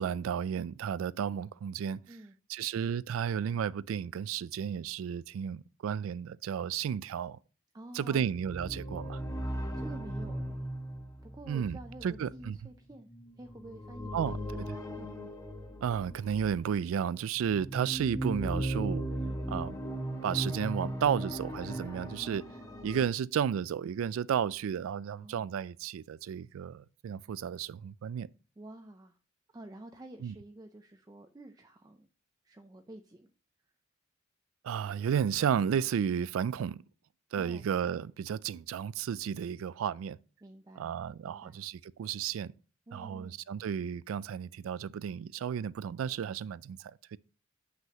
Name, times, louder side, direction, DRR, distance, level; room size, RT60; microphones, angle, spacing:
voice 1, 0.0-2.0 2.5-7.4 7.9-9.2 11.5-12.6 14.1-14.8 15.8-19.0 19.5-19.8 20.2-22.4 22.8-28.3 30.2-30.3 34.6-36.8 37.3-40.2 40.8-42.5 42.9-47.2, right 8 dB, 90° right, 0.3 m, -33 dB
voice 2, 7.7-8.3 9.7-10.7 11.2-13.1 13.4-14.7 15.0-15.3 25.1-25.5 28.6-29.2 29.5-32.1 32.4-33.3 37.3-37.6 40.4-41.0 41.2-41.6 42.9-43.4, right 1 dB, 20° right, 0.4 m, -49 dB
sound 1, 8.2-16.7 17.4-23.1, right 1 dB, 15° left, 1.0 m, -38 dB
7.5 x 6.0 x 2.8 m
head